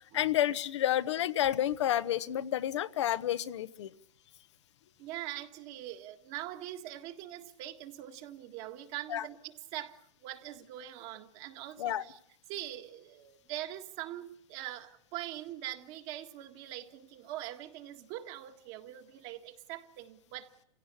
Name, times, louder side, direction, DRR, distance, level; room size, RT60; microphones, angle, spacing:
voice 1, 0.1-3.9 9.1-9.2 11.8-12.0, left 12 dB, 75° left, 1.1 m, -30 dB
voice 2, 5.0-12.2 12.5-20.6, right 13 dB, 45° right, 1.9 m, -43 dB
29.0 x 16.5 x 8.3 m
hypercardioid pair, 140°, 15 cm